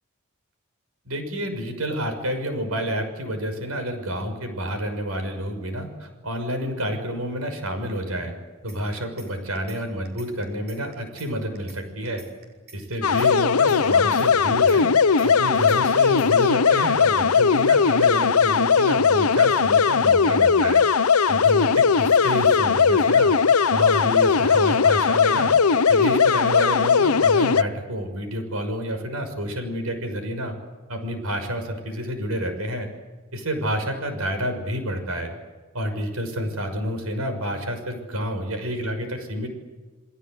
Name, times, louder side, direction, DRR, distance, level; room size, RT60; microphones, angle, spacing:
voice 1, 1.0-8.3 8.6-12.2 12.7-14.9 15.2-20.9 21.3-23.3 23.7-25.5 25.9-30.5 30.9-32.9 33.3-35.3 35.7-39.5, equal, 80° right, 7 dB, 6.3 m, -29 dB
sound 1, 8.7-9.3 9.6-9.8 10.1-11.3 11.6-11.8 12.1-13.3 13.6-13.8 14.1-15.3 15.6-15.8 16.1-16.4, right 4 dB, 50° right, 7.1 m, -47 dB
sound 2, 13.0-27.6, left 6 dB, 90° left, 0.8 m, -18 dB
29.5 x 20.5 x 8.0 m, 1.3 s
head